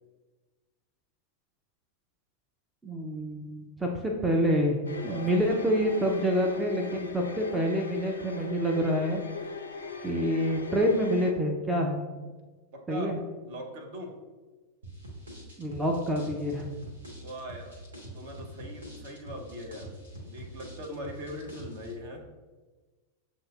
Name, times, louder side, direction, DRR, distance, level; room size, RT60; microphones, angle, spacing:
voice 1, 2.8-4.8 5.0-9.2 10.0-12.0 12.9-13.2 15.6-16.6, equal, 10° right, 1 dB, 0.5 m, -27 dB
sound 1, 4.9-11.3, left 4 dB, 70° left, 0.4 m, -39 dB
voice 2, 5.0-5.6 12.7-13.1 13.4-14.2 17.2-17.7 18.1-19.9 20.2-22.2, equal, 50° right, 1 dB, 0.8 m, -41 dB
sound 2, 14.8-21.9, equal, 75° right, 1.1 m, -45 dB
7.4 x 2.6 x 2.4 m, 1.3 s
figure-of-eight pair, 90°, 0 cm